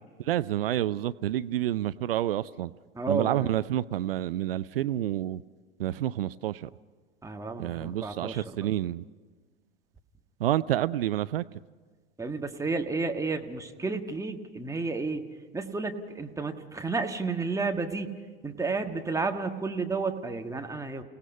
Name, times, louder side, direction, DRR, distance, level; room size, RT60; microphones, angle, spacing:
voice 1, 0.3-2.7 3.1-5.4 5.8-6.7 7.6-9.0 10.4-11.4, right 13 dB, 70° right, 17 dB, 0.5 m, -28 dB
voice 2, 2.9-3.5 7.2-8.7 12.2-15.2 15.5-18.2 18.4-21.0, right 4 dB, 10° right, 4 dB, 1.6 m, -31 dB
30.0 x 18.0 x 5.5 m, 1.5 s
figure-of-eight pair, 85°, 30 cm